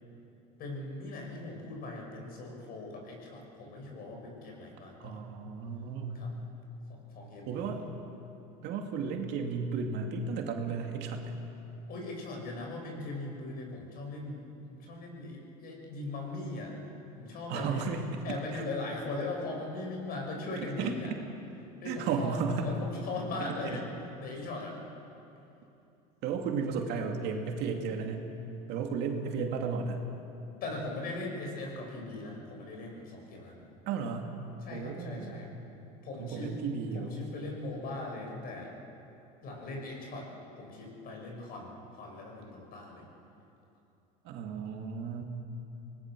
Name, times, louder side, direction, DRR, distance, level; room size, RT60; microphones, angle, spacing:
voice 1, 0.6-5.2 6.1-6.4 6.9-7.8 11.9-16.7 17.1-17.8 18.2-21.1 21.8-23.8 24.2-24.8 30.6-33.6 34.6-35.5 36.0-36.5 36.9-38.7 39.4-40.3 40.6-43.0, left 2 dB, 50° left, 0 dB, 6.3 m, -39 dB
voice 2, 5.0-6.3 7.5-7.8 8.6-11.3 17.5-18.2 18.5-18.6 20.8-20.9 21.9-22.7 26.2-28.2 28.7-30.0 33.9-34.3 34.7-35.4 36.2-37.2 44.2-45.2, right 5 dB, 60° right, 3 dB, 2.5 m, -34 dB
25.0 x 19.5 x 6.2 m, 2.8 s
supercardioid pair, 115°, 20 cm